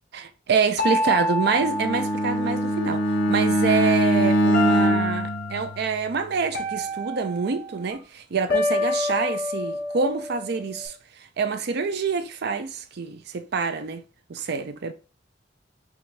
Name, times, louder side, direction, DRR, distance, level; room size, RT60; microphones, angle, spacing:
voice 1, 0.1-14.0 14.3-14.9, right 5 dB, 60° right, 0.5 m, -26 dB
sound 1, 0.8-3.1 4.5-5.6 6.5-7.8 8.5-10.9, left 1 dB, 55° left, 1.9 m, -28 dB
Bowed string instrument, 1.5-6.2, equal, 75° left, 0.8 m, -23 dB
5.9 x 2.7 x 3.2 m
head